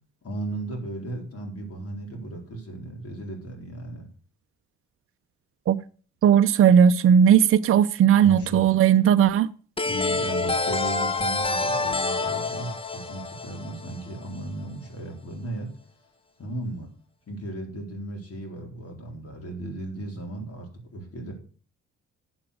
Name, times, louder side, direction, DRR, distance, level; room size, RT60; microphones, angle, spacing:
voice 1, 0.2-4.1 8.1-8.7 9.8-15.7 16.4-16.9 17.3-21.3, right 2 dB, 50° left, 4.0 m, -35 dB
voice 2, 6.2-9.5, right 8 dB, 45° right, 0.6 m, -17 dB
sound 1, 9.8-14.4, left 3 dB, 20° left, 0.9 m, -27 dB
8.8 x 7.5 x 6.4 m
cardioid pair, 90°, 30 cm